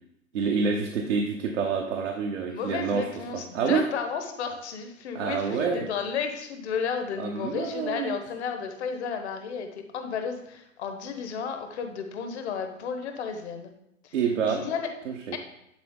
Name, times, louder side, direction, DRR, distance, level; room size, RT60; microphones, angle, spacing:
voice 1, 0.3-3.1 3.3-3.8 5.1-5.9 7.2-8.2 14.1-14.6 15.1-15.4, right 5 dB, 65° right, 0 dB, 1.1 m, -27 dB
voice 2, 2.5-13.7 14.0-14.1 14.5-14.9 15.3-15.4, left 6 dB, 55° left, 6 dB, 1.3 m, -33 dB
10.5 x 4.2 x 3.8 m, 0.81 s
figure-of-eight pair, 105°, 39 cm